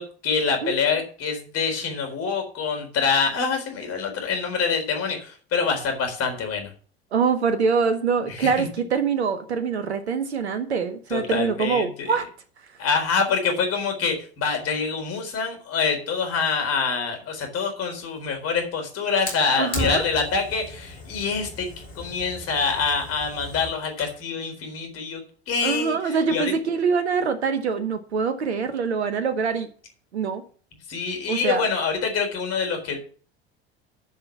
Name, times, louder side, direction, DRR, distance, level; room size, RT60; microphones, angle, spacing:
voice 1, 0.0-6.7 8.3-8.7 11.1-12.1 12.8-21.7 22.0-26.5 30.9-33.0, left 5 dB, 50° left, 5 dB, 4.2 m, -26 dB
voice 2, 7.1-12.3 19.6-20.0 25.6-29.7 30.1-30.4 31.3-31.7, right 5 dB, 85° right, 9 dB, 1.0 m, -24 dB
Fire, 19.3-24.2, left 2 dB, 90° left, 3.4 m, -36 dB
10.5 x 5.8 x 7.2 m, 0.44 s
hypercardioid pair, 70°, 32 cm